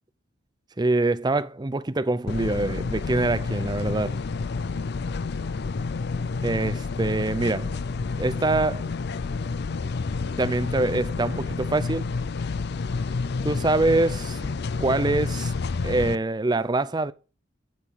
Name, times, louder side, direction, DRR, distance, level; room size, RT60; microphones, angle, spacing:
voice 1, 0.8-4.2 6.4-7.8 8.2-8.9 10.4-12.1 13.4-14.5 14.8-15.5 15.8-17.1, right 2 dB, 20° right, 0.5 m, -24 dB
sound 1, 2.3-16.1, left 4 dB, 55° left, 0.5 m, -29 dB
10.5 x 5.0 x 7.0 m
head